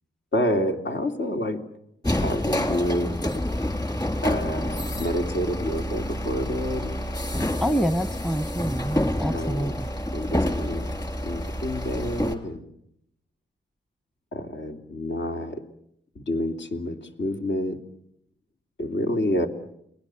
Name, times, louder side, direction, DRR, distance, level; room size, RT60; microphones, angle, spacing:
voice 1, 0.3-1.6 2.1-3.2 4.2-7.0 9.3-9.7 10.1-10.9 11.2-12.7 14.3-15.6 16.1-17.8 18.8-19.5, left 1 dB, 65° left, 5 dB, 3.2 m, -28 dB
sound 1, 2.0-12.3, left 1 dB, 20° left, 3.7 m, -28 dB
voice 2, 7.6-9.7, equal, 5° left, 13 dB, 1.1 m, -26 dB
30.0 x 20.0 x 7.8 m, 0.73 s
cardioid pair, 75°, 20 cm